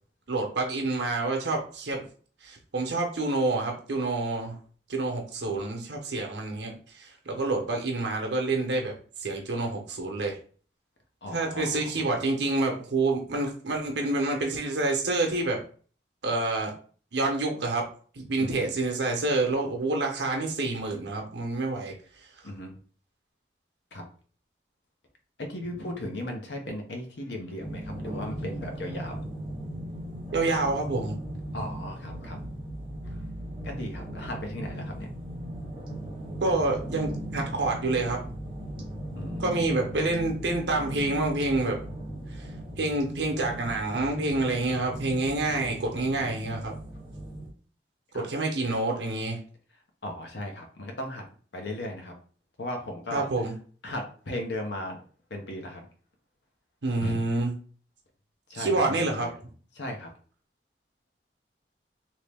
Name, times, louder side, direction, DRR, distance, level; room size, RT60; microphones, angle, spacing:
voice 1, 0.3-2.0 2.4-4.6 4.9-8.9 9.2-10.4 11.3-15.6 16.2-16.7 17.1-17.9 18.1-21.9 30.3-31.2 36.4-38.2 39.4-41.8 42.8-46.7 48.1-49.4 53.1-53.5 56.8-57.5 58.5-59.3, right 2 dB, 85° right, 1 dB, 0.8 m, -28 dB
voice 2, 11.2-12.1 18.4-18.6 22.4-22.7 23.9-24.0 25.4-29.3 31.5-32.4 33.6-35.1 39.2-39.8 48.1-48.3 50.0-51.3 51.5-52.1 52.6-53.5 53.8-55.0 55.3-55.8 57.0-57.3 58.5-59.4 59.7-60.1, left 1 dB, 80° left, 3 dB, 0.9 m, -36 dB
sound 1, 27.6-47.5, right 1 dB, 30° right, 1.0 m, -38 dB
3.0 x 2.7 x 3.4 m, 0.43 s
head